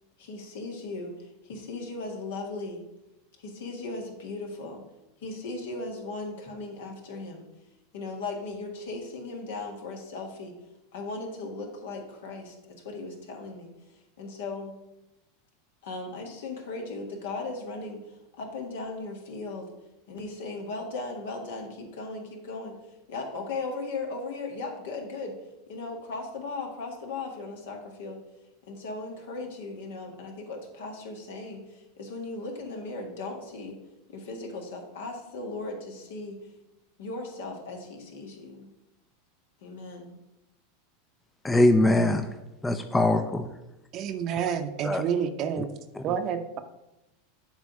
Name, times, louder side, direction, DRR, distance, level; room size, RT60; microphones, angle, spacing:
voice 1, 0.2-2.8 3.4-4.8 5.2-7.5 7.9-10.5 10.9-12.5 12.8-14.7 15.8-19.7 20.1-22.7 23.1-25.4 25.7-28.2 28.7-33.8 34.1-36.5 37.0-38.7 39.6-40.2, left 3 dB, 75° left, 2 dB, 1.7 m, -37 dB
voice 2, 41.4-42.3 42.6-43.5 44.8-45.0, left 1 dB, 10° left, 8 dB, 0.5 m, -22 dB
voice 3, 43.9-45.7 46.0-46.4, right 8 dB, 45° right, 8 dB, 0.7 m, -29 dB
7.3 x 3.5 x 6.3 m, 0.92 s
hypercardioid pair, 100°, 0 cm